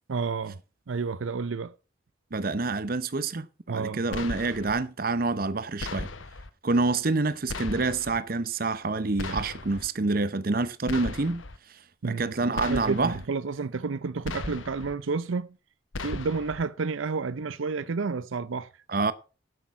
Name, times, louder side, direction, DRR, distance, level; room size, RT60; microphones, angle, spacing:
voice 1, 0.1-0.6 0.9-1.7 3.7-4.0 12.0-15.5 16.0-18.7, right 4 dB, 85° right, 0.6 m, -30 dB
voice 2, 2.3-6.1 6.6-11.4 12.0-13.2 18.9-19.1, right 3 dB, 50° right, 0.8 m, -27 dB
sound 1, 4.1-4.8 5.8-6.5 7.5-8.2 9.2-9.9 10.9-11.6 12.6-13.3 14.2-14.9 15.9-16.6, left 3 dB, 85° left, 1.0 m, -36 dB
9.9 x 8.4 x 5.8 m
head